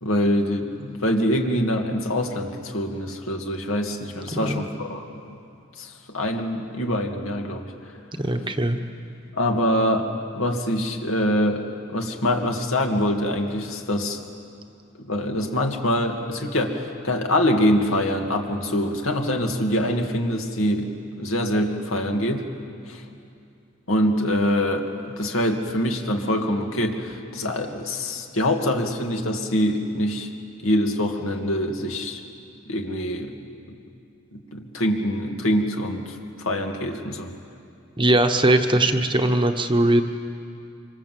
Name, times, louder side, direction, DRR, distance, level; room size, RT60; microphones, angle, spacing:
voice 1, 0.0-5.0 5.8-7.7 9.3-10.1 10.3-11.6 11.9-14.2 15.0-22.4 22.9-23.0 23.9-30.3 30.6-32.2 32.7-33.3 33.7-33.8 34.3-37.3, left 1 dB, 75° left, 2 dB, 2.4 m, -24 dB
voice 2, 4.3-4.6 8.2-8.8 38.0-40.0, right 1 dB, 25° right, 6 dB, 1.1 m, -20 dB
26.0 x 25.0 x 7.8 m, 2.5 s
head